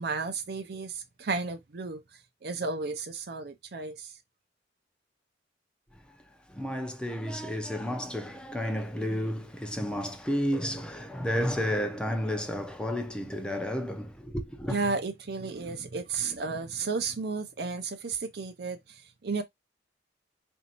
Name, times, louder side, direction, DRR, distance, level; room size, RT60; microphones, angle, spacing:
voice 1, 0.0-2.0 2.4-4.2 14.7-19.4, right 4 dB, 60° right, 0.5 m, -33 dB
voice 2, 6.5-14.8, equal, 5° left, 0.6 m, -31 dB
4.2 x 2.6 x 2.9 m
head